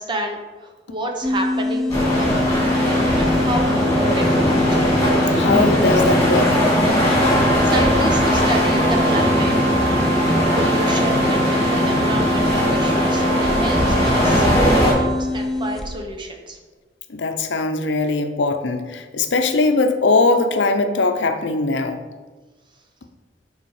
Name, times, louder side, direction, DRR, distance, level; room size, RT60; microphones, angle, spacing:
voice 1, 0.0-4.8 7.4-9.5 10.5-16.6, right 1 dB, 25° right, 3 dB, 0.9 m, -30 dB
sound 1, 1.2-16.0, left 2 dB, ahead, 0.6 m, -24 dB
sound 2, 1.9-14.9, equal, 20° left, 2.3 m, -19 dB
voice 2, 5.4-6.6 17.1-22.0, left 3 dB, 85° left, 7 dB, 0.7 m, -20 dB
Wind instrument woodwind instrument, 7.1-15.3, right 5 dB, 50° right, 1.2 m, -28 dB
6.9 x 4.8 x 4.8 m, 1.3 s
head